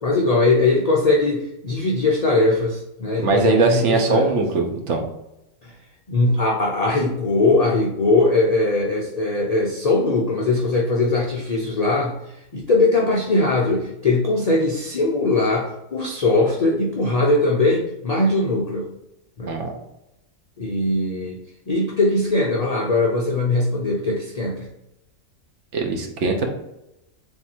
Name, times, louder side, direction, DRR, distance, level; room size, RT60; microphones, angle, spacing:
voice 1, 0.0-4.3 5.6-5.7 6.1-12.2 12.5-18.9 19.4-19.5 20.6-21.4 21.7-24.7, left 2 dB, 65° left, -2 dB, 0.3 m, -20 dB
voice 2, 3.2-5.0 19.5-19.7 25.7-26.6, right 4 dB, 65° right, 3 dB, 0.9 m, -21 dB
3.7 x 2.6 x 4.3 m, 0.88 s
omnidirectional pair, 1.4 m